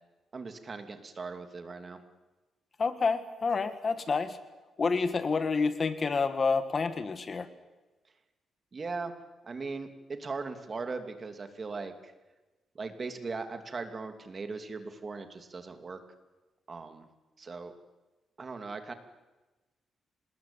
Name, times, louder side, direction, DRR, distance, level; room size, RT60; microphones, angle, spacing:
voice 1, 0.3-2.0 8.7-9.1 9.4-12.1 12.7-16.0 16.7-17.0 17.4-17.7 18.4-18.9, right 4 dB, 35° right, 7 dB, 2.8 m, -39 dB
voice 2, 2.8-4.4 4.8-7.5, left 4 dB, 35° left, 11 dB, 1.5 m, -28 dB
26.5 x 20.0 x 9.1 m, 1.1 s
cardioid pair, 120°, 0 cm